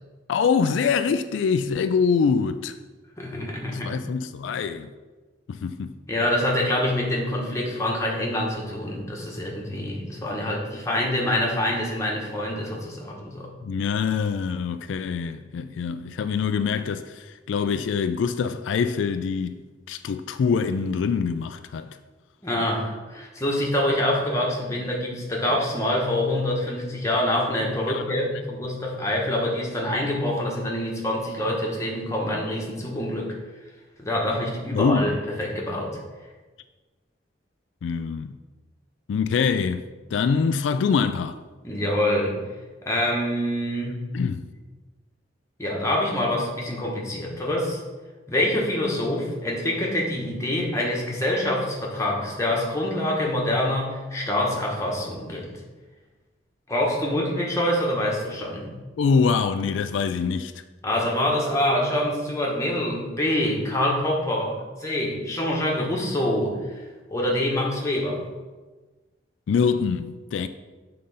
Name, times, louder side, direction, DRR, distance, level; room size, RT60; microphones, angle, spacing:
voice 1, 0.3-2.8 3.7-4.9 5.5-6.0 13.6-21.9 27.9-28.0 34.7-35.2 37.8-38.3 39.1-41.4 44.1-44.5 59.0-60.5 69.5-70.5, left 5 dB, 80° left, 0.3 m, -24 dB
voice 2, 3.2-4.0 6.1-13.5 22.4-33.3 34.0-35.9 41.6-42.4 42.8-44.0 45.6-47.8 48.3-55.5 56.7-58.7 60.8-66.8 67.1-68.3, left 1 dB, 15° left, 1.3 m, -26 dB
6.9 x 3.8 x 5.4 m
head